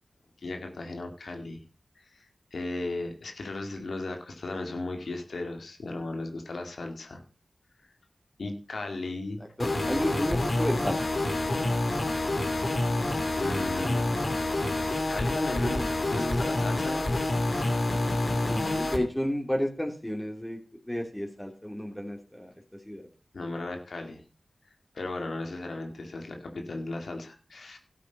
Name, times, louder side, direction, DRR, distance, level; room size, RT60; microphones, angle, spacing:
voice 1, 0.4-1.6 2.1-7.2 8.4-9.4 13.4-14.1 15.1-15.9 16.1-17.1 23.3-24.2 24.9-27.8, left 2 dB, 80° left, 4 dB, 2.3 m, -35 dB
sound 1, 9.6-19.0, left 2 dB, 55° left, 2.8 m, -27 dB
voice 2, 9.6-11.0 11.5-11.7 18.5-20.6 20.9-22.5 22.9-23.1, equal, 10° left, 1 dB, 3.0 m, -31 dB
12.5 x 8.4 x 5.4 m, 0.37 s
cardioid pair, 45°, 0 cm